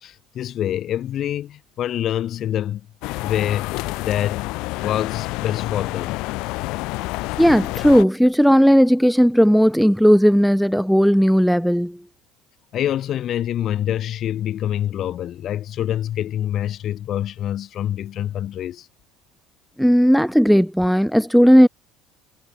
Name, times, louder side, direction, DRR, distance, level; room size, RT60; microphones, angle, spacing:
voice 1, 0.0-2.9 3.2-4.5 4.8-6.2 7.2-7.3 12.7-18.9, left 11 dB, 45° left, 1.4 m, -26 dB
sound 1, 3.0-8.0, left 22 dB, 70° left, 1.0 m, -28 dB
voice 2, 7.4-12.0 19.8-21.7, equal, ahead, 0.7 m, -15 dB
cardioid pair, 145°, 0 cm